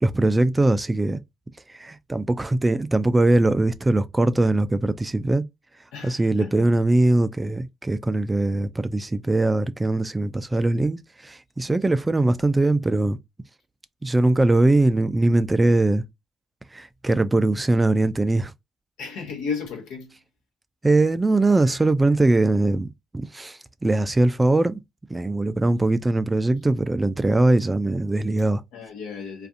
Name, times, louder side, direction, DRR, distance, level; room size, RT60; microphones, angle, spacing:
voice 1, 0.0-1.2 1.7-5.4 6.0-13.2 14.0-16.0 16.7-18.5 20.8-24.8 25.1-28.6, right 2 dB, 20° right, 0.3 m, -21 dB
voice 2, 5.9-6.7 19.0-20.2 28.7-29.5, left 5 dB, 85° left, 0.9 m, -34 dB
2.4 x 2.4 x 2.6 m
supercardioid pair, 55°, 0 cm